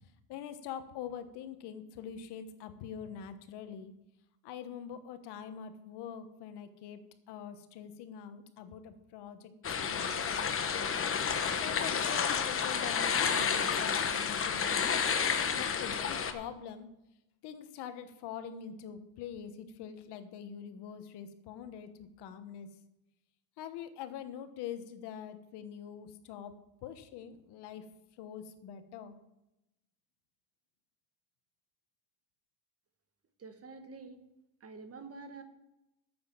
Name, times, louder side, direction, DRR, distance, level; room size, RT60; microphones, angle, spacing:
voice 1, 0.0-3.9 4.4-7.0 7.3-9.5 9.9-10.5 11.6-14.7 15.5-16.9 17.4-22.7 23.6-26.6 26.8-27.9 28.2-29.2, left 8 dB, 70° left, 10 dB, 1.3 m, -44 dB
sound 1, 9.6-16.3, left 6 dB, 30° left, 1.1 m, -30 dB
voice 2, 33.4-34.3 34.6-35.4, right 4 dB, 35° right, 7 dB, 1.6 m, -47 dB
9.4 x 8.1 x 7.0 m, 0.91 s
cardioid pair, 110°, 42 cm